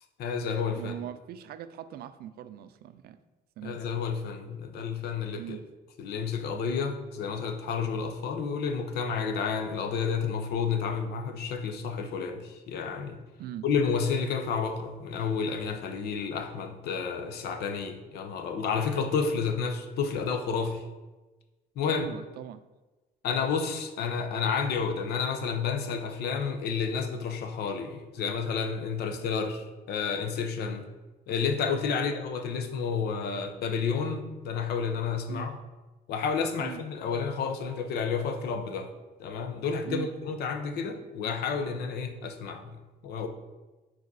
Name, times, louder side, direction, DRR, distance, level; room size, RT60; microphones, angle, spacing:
voice 1, 0.2-0.9 3.6-5.6 6.0-13.2 13.6-20.9 21.8-22.1 23.2-30.9 31.3-35.6 36.1-38.9 39.2-43.3, left 5 dB, 75° left, 7 dB, 0.8 m, -30 dB
voice 2, 0.8-3.2 3.6-3.8 5.4-5.6 13.4-13.6 21.9-22.6 31.9-32.1 35.3-35.5 36.6-36.8 39.8-40.1, right 10 dB, 65° right, 12 dB, 0.4 m, -40 dB
4.7 x 4.2 x 4.7 m, 1.2 s
cardioid pair, 110°, 17 cm